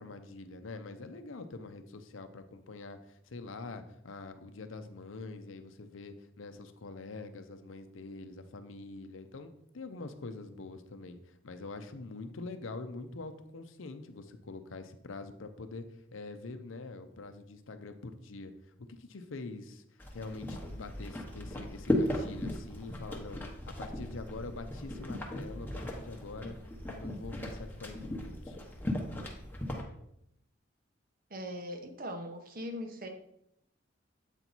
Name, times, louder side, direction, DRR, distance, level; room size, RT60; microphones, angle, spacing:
voice 1, 0.0-15.8 16.1-18.5 18.8-19.8 20.1-26.6 26.9-28.6, left 3 dB, 85° left, 9 dB, 0.7 m, -45 dB
sound 1, 20.0-29.8, left 1 dB, 10° left, 0.9 m, -37 dB
voice 2, 31.3-33.1, equal, 45° right, 6 dB, 0.9 m, -40 dB
8.0 x 4.5 x 4.0 m, 0.76 s
head